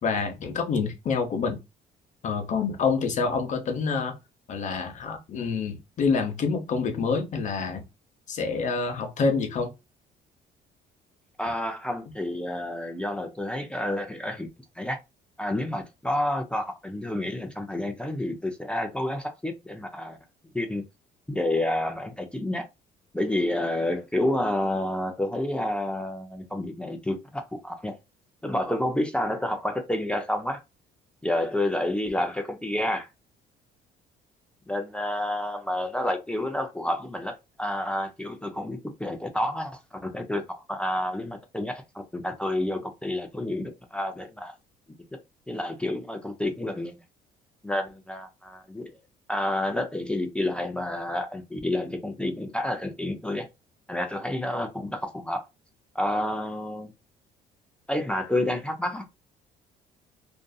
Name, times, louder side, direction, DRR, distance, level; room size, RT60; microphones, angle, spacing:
voice 1, 0.0-1.6 2.2-4.1 4.5-7.8 8.3-9.7, left 5 dB, 45° left, 0.8 m, -27 dB
voice 2, 11.4-14.5 14.8-15.0 15.4-20.2 20.5-20.8 21.3-22.7 23.1-28.0 28.4-30.6 31.2-33.1 34.7-44.5 45.5-47.0 47.6-48.9 49.3-53.5 53.9-55.5 55.9-56.9 57.9-59.2, left 1 dB, 5° left, 0.4 m, -29 dB
2.6 x 2.5 x 2.2 m
cardioid pair, 110°, 17 cm